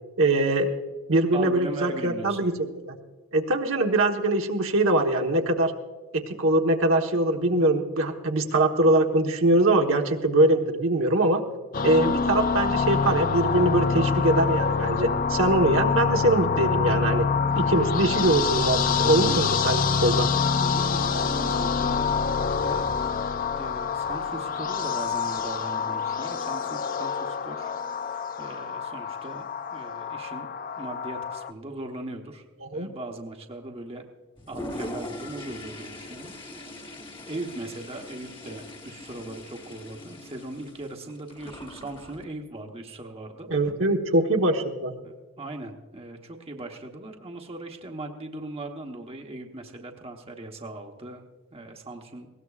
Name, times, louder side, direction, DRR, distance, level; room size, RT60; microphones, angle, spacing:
voice 1, 0.2-0.7 1.1-3.0 3.3-5.7 6.1-11.4 11.8-17.3 17.5-20.3 32.6-32.9 43.5-44.9, right 2 dB, 65° right, 3 dB, 1.2 m, -23 dB
voice 2, 1.3-2.4 20.5-22.9 23.6-27.7 28.0-29.4 29.7-30.5 30.8-32.4 32.7-34.0 34.5-36.3 37.3-43.5 45.0-51.2 51.5-52.3, right 2 dB, 25° right, 3 dB, 1.1 m, -39 dB
sound 1, 11.7-31.5, left 5 dB, 40° left, 0.5 m, -26 dB
Toilet flush, 34.4-42.2, left 1 dB, 25° left, 1.3 m, -41 dB
20.0 x 17.5 x 2.4 m, 1.3 s
head